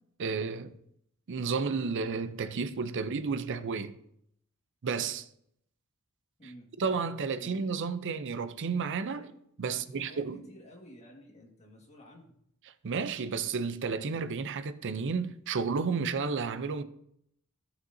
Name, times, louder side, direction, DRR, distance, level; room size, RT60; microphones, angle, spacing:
voice 1, 0.2-0.7 1.3-4.0 4.8-5.3 6.8-9.3 9.6-10.4 12.8-16.8, right 5 dB, 55° right, 0.5 m, -32 dB
voice 2, 9.6-12.4, equal, 30° left, 1.7 m, -52 dB
14.0 x 6.6 x 2.7 m
head